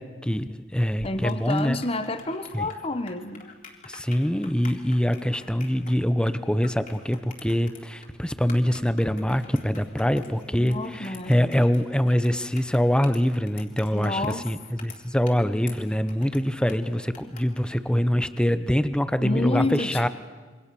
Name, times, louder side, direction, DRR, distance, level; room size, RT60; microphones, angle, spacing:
voice 1, 0.0-1.8 2.5-2.7 3.8-20.1, equal, 5° left, 12 dB, 0.9 m, -24 dB
sound 1, 0.7-18.5, left 4 dB, 45° left, 3.8 m, -48 dB
voice 2, 1.0-3.4 10.6-11.7 13.9-14.4 19.2-20.1, left 2 dB, 30° left, 10 dB, 1.2 m, -29 dB
27.5 x 25.0 x 7.0 m, 1.4 s
head